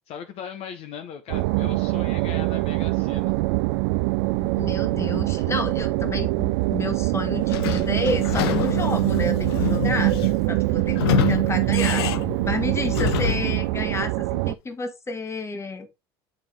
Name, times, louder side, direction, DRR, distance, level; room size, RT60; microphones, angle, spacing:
voice 1, 0.1-3.3, left 8 dB, 55° left, 0.8 m, -38 dB
sound 1, 1.3-14.5, right 22 dB, 75° right, 0.4 m, -24 dB
voice 2, 4.4-10.1 10.5-11.0 11.3-12.0 12.4-15.9, left 3 dB, 20° left, 1.5 m, -30 dB
Sliding door / Squeak, 7.5-13.6, left 12 dB, 85° left, 0.6 m, -28 dB
9.2 x 3.5 x 3.4 m
hypercardioid pair, 90°, 13 cm